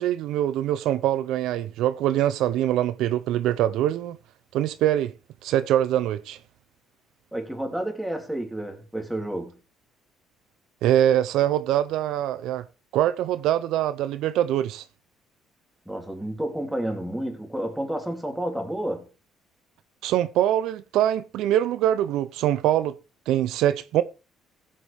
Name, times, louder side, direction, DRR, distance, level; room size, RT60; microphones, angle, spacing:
voice 1, 0.0-4.2 4.5-5.1 5.4-6.4 10.8-12.6 12.9-14.8 20.0-22.9 23.3-24.0, right 12 dB, 75° right, 0.5 m, -23 dB
voice 2, 7.3-9.6 15.9-19.1, right 1 dB, 5° right, 2.9 m, -30 dB
15.5 x 7.6 x 3.4 m
cardioid pair, 90°, 0 cm